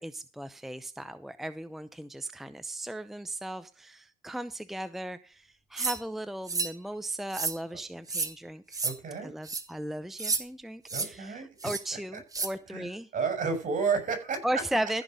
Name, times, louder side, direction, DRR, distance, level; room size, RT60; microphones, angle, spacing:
voice 1, 0.0-8.6 9.2-13.1 14.4-15.0, right 1 dB, ahead, 12 dB, 0.7 m, -36 dB
sound 1, 5.8-6.0 6.5-6.7 7.3-7.6 8.1-8.3 8.7-8.9 9.4-9.6 10.2-10.4 10.9-11.1 11.6-11.8 12.3-12.5, right 4 dB, 20° right, 1.7 m, -30 dB
voice 2, 8.8-9.3 10.9-11.5 12.1-12.2 12.7-14.4, right 5 dB, 50° right, 6 dB, 6.2 m, -31 dB
15.0 x 6.1 x 5.2 m, 0.36 s
cardioid pair, 110°, 17 cm